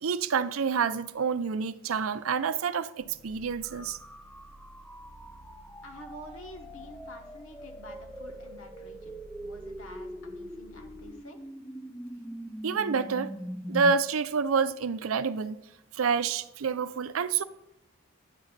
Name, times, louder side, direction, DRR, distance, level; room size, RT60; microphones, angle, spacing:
voice 1, 0.0-4.0 12.6-13.3 13.7-15.6 15.9-17.4, right 5 dB, 80° right, 0.5 m, -28 dB
sound 1, 3.0-11.2, right 1 dB, 90° left, 3.4 m, -53 dB
sound 2, 3.6-14.0, equal, 5° left, 0.3 m, -42 dB
voice 2, 5.8-9.1 9.4-11.4, equal, 70° left, 1.3 m, -48 dB
9.9 x 3.9 x 7.2 m
head